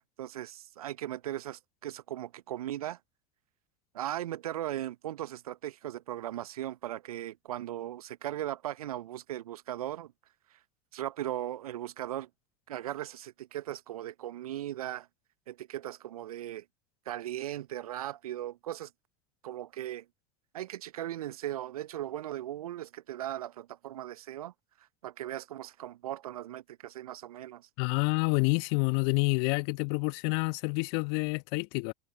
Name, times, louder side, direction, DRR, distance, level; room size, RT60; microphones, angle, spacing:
voice 1, 0.0-3.0 3.9-10.1 10.9-12.3 12.7-15.1 15.5-16.6 17.1-18.9 19.4-20.1 20.5-24.5 25.0-27.7, right 13 dB, 70° right, 1.1 m, -38 dB
voice 2, 27.8-31.9, left 35 dB, 55° left, 1.5 m, -28 dB
figure-of-eight pair, 75°, 20 cm